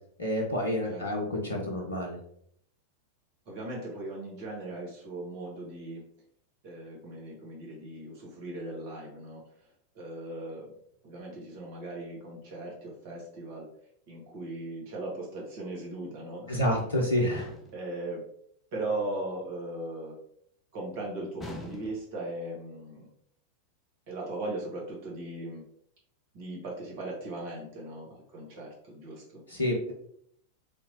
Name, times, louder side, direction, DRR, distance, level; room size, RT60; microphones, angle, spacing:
voice 1, 0.2-2.2 16.5-17.6 29.5-29.9, left 1 dB, 75° left, 0 dB, 0.6 m, -29 dB
voice 2, 3.4-6.0 6.6-9.5 9.9-10.7 11.0-13.7 14.1-16.9 17.7-18.2 18.7-20.2 20.7-23.1 24.1-25.6 26.3-29.4, right 2 dB, 50° right, -2 dB, 1.3 m, -38 dB
sound 1, 17.4-17.9 21.4-22.2, equal, 15° left, 0.6 m, -43 dB
3.6 x 2.8 x 2.8 m, 0.69 s
figure-of-eight pair, 90°, 0 cm